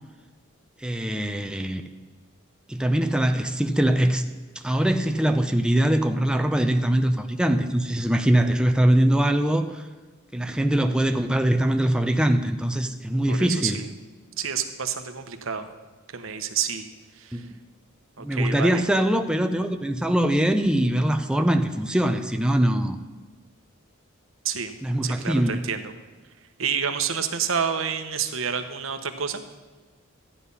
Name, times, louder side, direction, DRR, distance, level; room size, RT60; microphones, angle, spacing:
voice 1, 0.8-1.8 2.7-4.2 4.6-9.8 10.3-13.8 17.3-17.5 18.2-23.0 24.8-25.6, right 1 dB, 5° right, 6 dB, 0.6 m, -22 dB
voice 2, 13.3-13.9 14.4-15.7 16.1-16.8 17.2-17.4 18.2-18.8 24.4-24.7 25.0-25.9 26.6-29.4, right 7 dB, 70° right, 7 dB, 1.1 m, -29 dB
13.5 x 10.0 x 5.5 m, 1.3 s
head